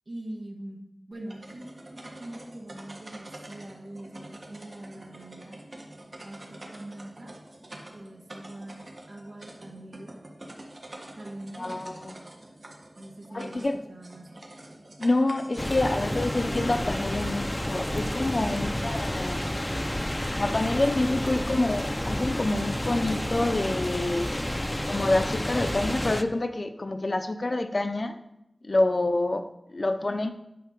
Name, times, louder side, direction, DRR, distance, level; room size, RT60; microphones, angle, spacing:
voice 1, 0.1-0.8 1.1-5.6 6.2-7.3 7.9-8.8 9.1-10.2 11.1-12.1 13.0-14.4 18.5-18.8, right 1 dB, 80° right, -1 dB, 1.8 m, -43 dB
sound 1, 1.1-18.1, right 1 dB, 65° right, 1.6 m, -47 dB
voice 2, 11.6-12.2 13.3-13.8 15.0-19.4 20.3-24.3 24.9-28.1 28.6-30.3, left 2 dB, 60° left, 8 dB, 0.8 m, -27 dB
sound 2, 15.6-26.2, left 1 dB, 20° left, 0.6 m, -30 dB
9.4 x 4.3 x 5.9 m, 0.85 s
wide cardioid pair, 45°, 0 cm